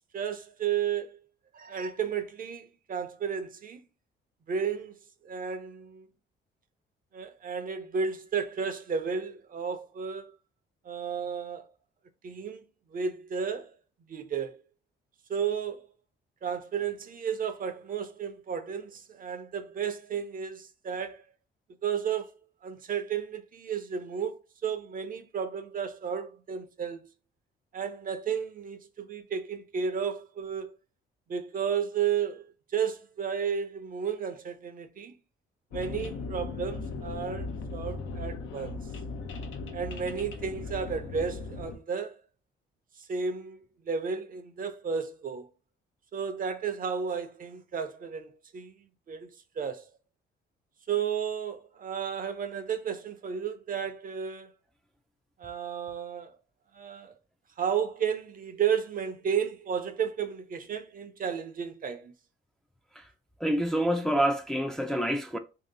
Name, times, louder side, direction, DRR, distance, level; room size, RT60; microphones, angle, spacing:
voice 1, 0.1-1.2 1.5-3.8 4.5-5.0 5.2-6.1 7.1-10.3 10.8-11.7 12.2-12.6 12.9-13.7 14.1-14.6 15.3-15.9 16.4-21.2 21.8-22.3 22.6-27.1 27.7-30.7 31.3-32.4 32.7-35.2 35.7-38.9 39.7-42.2 43.0-43.6 43.8-45.5 46.1-48.7 49.1-49.3 49.6-49.9 50.9-54.5 55.4-56.4 56.7-57.1 57.6-62.1, right 7 dB, 45° right, 0.6 m, -33 dB
sound 1, 35.7-41.8, left 3 dB, 75° left, 0.6 m, -38 dB
voice 2, 63.4-65.4, right 1 dB, 5° left, 0.4 m, -27 dB
3.0 x 2.8 x 3.9 m
cardioid pair, 90°, 20 cm